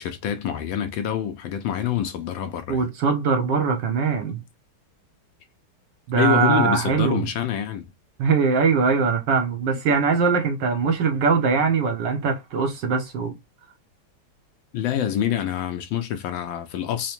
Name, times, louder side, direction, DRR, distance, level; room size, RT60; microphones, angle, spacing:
voice 1, 0.0-2.8 6.1-7.9 14.7-17.1, left 9 dB, 75° left, 1.3 m, -26 dB
voice 2, 2.7-4.4 6.1-7.2 8.2-13.3, right 5 dB, 65° right, 1.3 m, -21 dB
4.8 x 2.1 x 2.8 m
omnidirectional pair, 2.4 m